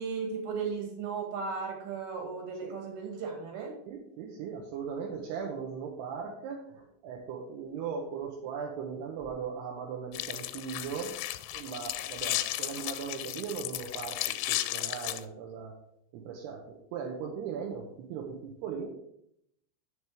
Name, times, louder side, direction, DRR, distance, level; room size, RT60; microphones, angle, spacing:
voice 1, 0.0-3.7, right 5 dB, 55° right, 1 dB, 3.5 m, -35 dB
voice 2, 3.9-11.2 11.5-15.7 16.1-18.9, right 6 dB, 75° right, -1 dB, 2.6 m, -38 dB
sound 1, 10.1-15.2, left 15 dB, 90° left, 3.2 m, -34 dB
7.8 x 6.9 x 4.9 m, 0.73 s
omnidirectional pair, 5.7 m